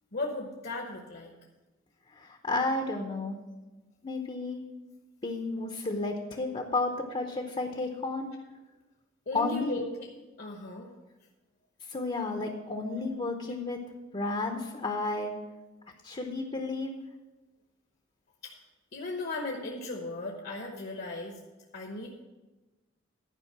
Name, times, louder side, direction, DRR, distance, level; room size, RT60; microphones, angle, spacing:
voice 1, 0.1-1.3 9.3-10.1 10.4-10.9 18.4-18.5 18.9-21.4 21.7-22.2, left 2 dB, 55° left, 0 dB, 1.0 m, -36 dB
voice 2, 2.2-3.4 4.0-4.6 5.2-8.3 9.3-9.8 11.9-13.8 14.1-15.3 16.0-16.9, left 3 dB, 30° left, 3 dB, 0.8 m, -32 dB
11.0 x 5.1 x 7.2 m, 1.2 s
head